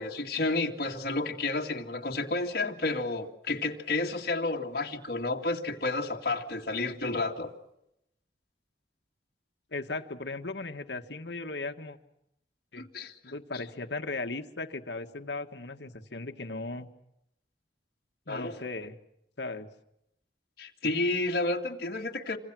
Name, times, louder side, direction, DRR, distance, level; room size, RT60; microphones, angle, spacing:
voice 1, 0.0-7.5 12.8-13.1 18.3-18.6 20.6-22.4, left 2 dB, 60° left, 2.2 m, -31 dB
voice 2, 9.7-12.0 12.7-12.8 13.2-16.9 18.3-19.0 19.4-19.7, left 3 dB, 75° left, 1.7 m, -37 dB
27.0 x 26.0 x 6.3 m
head